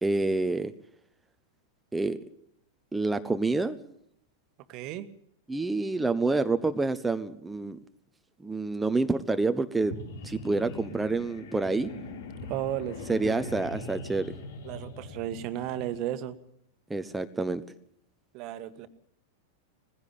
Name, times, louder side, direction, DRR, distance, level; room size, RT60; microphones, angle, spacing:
voice 1, 0.0-0.7 1.9-2.2 2.9-3.8 5.5-7.8 8.4-9.9 10.2-11.9 13.1-14.3 16.9-17.6, right 3 dB, 10° right, 9 dB, 1.0 m, -28 dB
voice 2, 4.7-5.1 12.5-13.5 14.6-16.4 18.3-18.9, right 12 dB, 45° right, 12 dB, 1.5 m, -34 dB
sound 1, 9.8-16.0, left 2 dB, 65° left, 3.6 m, -41 dB
19.5 x 16.0 x 8.7 m, 0.72 s
figure-of-eight pair, 95°, 0 cm